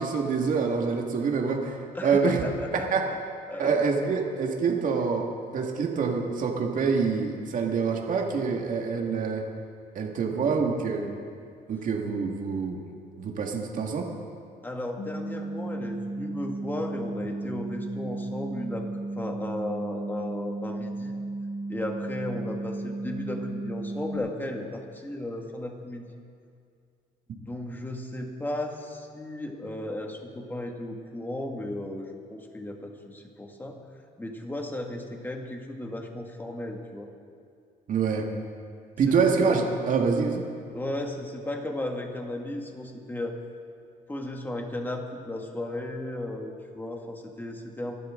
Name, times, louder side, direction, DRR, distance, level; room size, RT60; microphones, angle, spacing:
voice 1, 0.0-2.4 2.7-3.0 3.6-5.3 5.5-9.4 10.0-11.1 11.7-12.8 13.2-14.1 37.9-38.3 39.0-40.4, right 5 dB, 50° right, 1 dB, 2.0 m, -26 dB
voice 2, 1.9-3.2 3.5-3.7 14.6-18.9 19.2-21.2 21.7-26.1 27.3-33.8 34.2-37.1 39.1-39.2 40.7-43.4 44.1-48.0, left 1 dB, 10° left, 2 dB, 1.9 m, -35 dB
sound 1, 15.0-24.2, right 2 dB, 55° left, 2.7 m, -34 dB
24.0 x 12.0 x 3.8 m, 2.3 s
cardioid pair, 110°, 17 cm